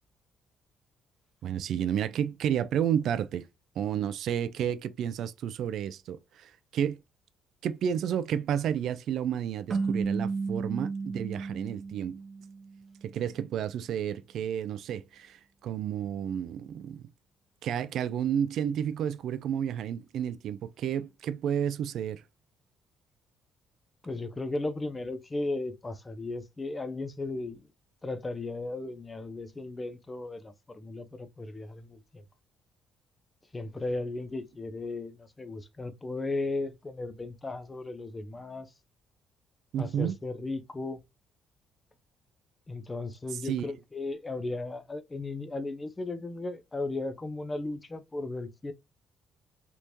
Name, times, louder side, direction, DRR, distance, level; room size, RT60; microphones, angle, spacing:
voice 1, 1.4-3.5 3.8-7.0 7.6-12.2 13.0-17.0 17.6-22.2 39.7-40.2 43.4-43.7, right 9 dB, 70° right, 0.3 m, -31 dB
sound 1, 9.7-12.9, right 4 dB, 40° right, 0.9 m, -33 dB
voice 2, 24.0-27.7 28.0-32.2 33.5-38.7 39.8-41.0 42.7-48.7, left 2 dB, 20° left, 0.6 m, -36 dB
3.4 x 3.0 x 2.6 m
cardioid pair, 95°, 0 cm